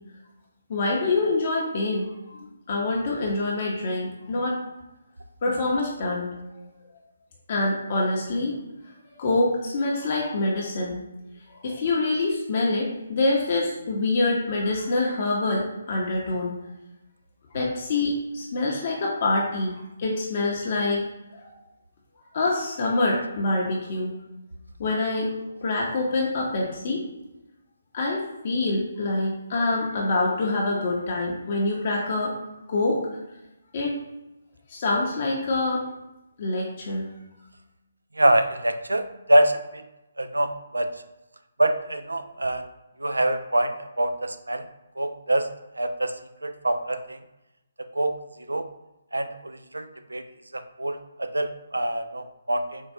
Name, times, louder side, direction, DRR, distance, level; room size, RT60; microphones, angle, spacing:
voice 1, 0.7-4.6 5.4-6.6 7.5-8.6 9.1-11.0 11.5-16.5 17.5-21.0 21.3-21.6 22.3-24.1 24.8-25.3 25.6-27.0 27.9-32.3 32.7-33.0 33.7-34.0 34.7-35.8 36.4-37.1, left 2 dB, 45° left, -3 dB, 0.6 m, -26 dB
voice 2, 38.2-39.0 39.3-39.6 40.2-40.9 41.6-42.7 43.0-44.6 45.0-45.5 45.8-46.1 46.4-47.2 48.0-48.1 48.5-48.7 49.1-49.8 50.1-50.2 50.5-52.8, right 1 dB, 85° right, 8 dB, 0.3 m, -24 dB
4.4 x 2.2 x 2.6 m, 0.97 s
figure-of-eight pair, 140°, 0 cm